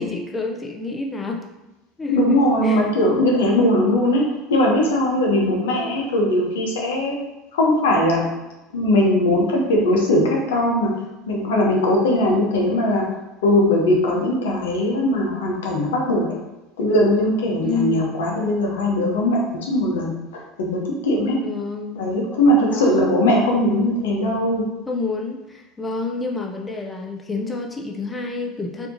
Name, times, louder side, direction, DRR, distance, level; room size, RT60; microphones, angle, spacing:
voice 1, 0.0-1.4 2.0-2.9 17.6-18.0 21.4-22.0 22.7-23.2 24.9-28.9, left 3 dB, 20° left, 1 dB, 0.5 m, -28 dB
voice 2, 2.1-4.2 4.5-7.2 7.5-8.2 8.7-10.9 11.3-13.0 13.4-16.3 16.8-21.4 22.0-24.6, left 1 dB, 85° left, -1 dB, 0.9 m, -20 dB
4.2 x 2.8 x 2.7 m, 1.0 s
hypercardioid pair, 85°, 0 cm